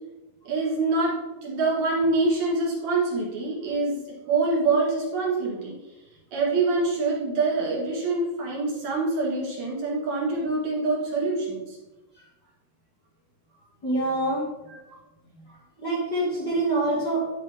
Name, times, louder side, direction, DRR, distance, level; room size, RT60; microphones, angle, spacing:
voice 1, 0.4-1.2 1.4-4.0 4.3-5.8 6.3-11.8 14.7-14.8, right 3 dB, 55° right, -4 dB, 3.2 m, -25 dB
voice 2, 13.8-14.5 15.2-17.4, right 2 dB, 30° left, -8 dB, 2.5 m, -26 dB
10.0 x 6.5 x 3.7 m, 1.0 s
omnidirectional pair, 4.3 m